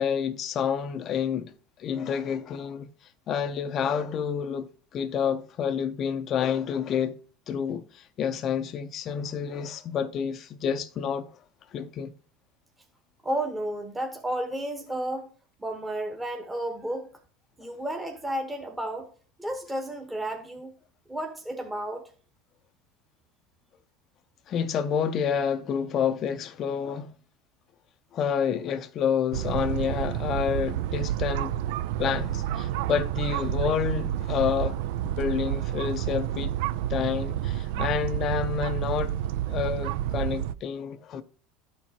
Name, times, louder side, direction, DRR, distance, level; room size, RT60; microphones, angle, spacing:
voice 1, 0.0-1.5 1.8-2.9 3.3-7.2 7.5-11.3 11.7-12.1 24.5-27.1 28.1-31.5 32.0-34.8 35.2-36.5 36.9-39.2 39.5-41.2, left 7 dB, 45° left, 0.5 m, -29 dB
voice 2, 13.2-15.3 15.6-17.1 17.6-19.1 19.4-20.7 21.1-22.0, right 1 dB, 10° right, 1.0 m, -32 dB
sound 1, 29.3-40.5, right 12 dB, 75° right, 0.3 m, -29 dB
12.5 x 4.4 x 2.8 m
supercardioid pair, 115°, 0 cm